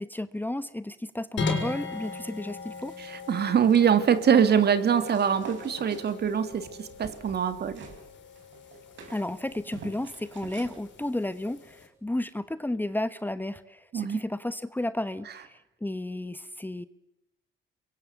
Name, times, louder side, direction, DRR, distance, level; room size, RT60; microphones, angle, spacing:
voice 1, 0.0-2.9 9.1-16.9, left 1 dB, 10° left, 13 dB, 1.1 m, -33 dB
sound 1, 1.4-11.9, left 4 dB, 70° left, 6.2 m, -39 dB
voice 2, 3.1-7.8 13.9-14.2, right 8 dB, 55° right, 10 dB, 2.7 m, -23 dB
sound 2, 5.1-8.0 8.3-10.8, right 5 dB, 70° right, 6.0 m, -46 dB
28.0 x 23.0 x 8.2 m, 0.86 s
cardioid pair, 90°, 20 cm